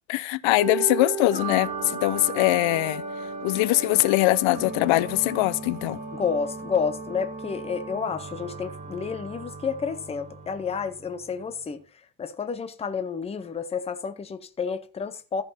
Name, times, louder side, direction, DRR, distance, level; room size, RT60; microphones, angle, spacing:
voice 1, 0.1-3.0 3.4-6.0, left 19 dB, 80° left, 0.6 m, -22 dB
sound 1, 0.6-11.6, right 4 dB, 15° right, 2.2 m, -36 dB
voice 2, 6.1-11.8 12.2-15.4, left 6 dB, 15° left, 0.6 m, -30 dB
14.5 x 5.8 x 4.2 m
cardioid pair, 175°, 47 cm